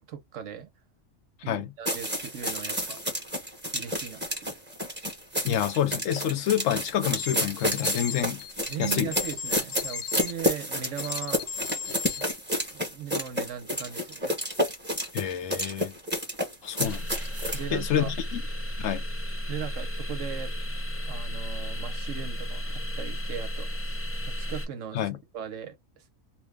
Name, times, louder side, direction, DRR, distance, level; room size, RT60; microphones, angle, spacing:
voice 1, 0.1-0.7 1.4-3.0 3.7-4.6 8.7-11.4 12.2-12.3 12.7-14.4 17.5-18.1 19.5-20.5 21.0-25.8, right 8 dB, 70° right, 1.0 m, -38 dB
sound 1, 1.8-17.6, equal, 10° right, 0.9 m, -30 dB
voice 2, 5.4-8.4 8.8-9.1 15.1-15.9 16.6-17.1 17.7-18.4 18.8-19.0 24.9-25.2, left 10 dB, 75° left, 0.9 m, -28 dB
sound 2, 7.1-10.3 11.0-12.3, left 6 dB, 55° left, 0.7 m, -36 dB
sound 3, 16.8-24.7, equal, 20° left, 0.4 m, -33 dB
2.9 x 2.2 x 3.3 m
omnidirectional pair, 1.4 m